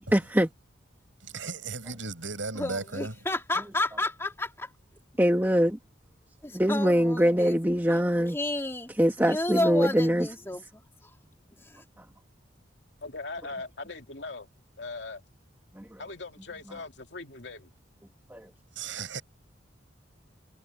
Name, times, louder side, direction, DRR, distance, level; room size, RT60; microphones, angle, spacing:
voice 1, 0.1-0.5 5.2-5.8 6.5-8.4 9.0-10.3 15.8-16.0 18.3-18.5, equal, 10° right, 1.2 m, -23 dB
voice 2, 1.3-3.1 18.8-19.2, right 4 dB, 85° right, 7.1 m, -35 dB
voice 3, 2.5-4.7 6.4-7.6 8.3-8.9 9.2-10.6 11.6-11.8, left 2 dB, 15° left, 2.7 m, -31 dB
voice 4, 13.0-14.5 14.8-15.2 16.0-17.7, left 3 dB, 65° left, 2.6 m, -40 dB
head